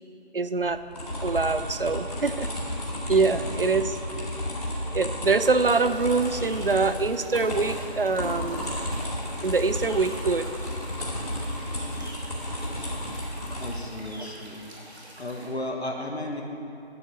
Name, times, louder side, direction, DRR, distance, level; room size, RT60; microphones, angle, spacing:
voice 1, 0.3-0.8 1.2-2.5 3.1-4.0 4.9-8.7 9.4-10.5 14.2-14.3, right 4 dB, 55° right, 12 dB, 0.5 m, -24 dB
sound 1, 0.6-13.7, left 1 dB, 35° left, 2.4 m, -32 dB
sound 2, 5.6-15.5, right 1 dB, 70° right, 2.6 m, -47 dB
voice 2, 13.6-14.6 15.2-16.4, left 1 dB, 70° left, 1 dB, 1.7 m, -34 dB
11.0 x 6.6 x 6.5 m, 2.8 s
figure-of-eight pair, 175°, 33 cm